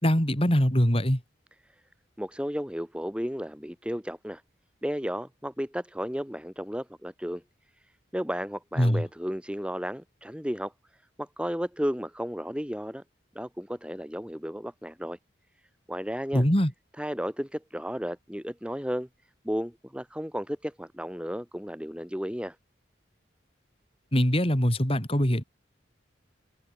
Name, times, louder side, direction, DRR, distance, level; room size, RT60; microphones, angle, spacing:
voice 1, 0.0-1.2 8.8-9.0 16.3-16.7 24.1-25.4, equal, 30° left, 4.7 m, -23 dB
voice 2, 2.2-4.4 4.8-7.4 8.1-10.7 11.2-13.0 13.3-15.2 15.9-16.4 17.0-19.1 19.4-22.5, equal, 5° right, 2.8 m, -33 dB
head